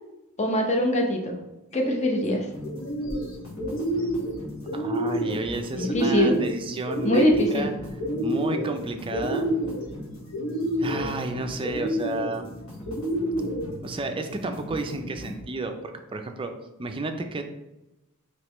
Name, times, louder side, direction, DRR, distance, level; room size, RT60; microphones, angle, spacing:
voice 1, 0.4-1.4 1.7-2.5 5.7-6.3 7.0-7.7, left 1 dB, 30° left, 2 dB, 0.7 m, -23 dB
sound 1, 1.7-2.2 2.6-3.3 3.6-4.3 4.7-5.4 5.8-6.5 6.9-7.7 8.0-8.7 9.1-9.8 10.3-11.1 11.6-12.3 12.8-13.6, right 1 dB, 65° left, 1.1 m, -28 dB
sound 2, 2.5-15.4, left 1 dB, 80° left, 1.5 m, -40 dB
voice 2, 4.7-7.7 8.2-9.5 10.8-12.5 13.8-16.5 16.8-17.4, right 2 dB, 25° right, 6 dB, 0.4 m, -32 dB
5.2 x 3.1 x 3.0 m, 0.97 s
head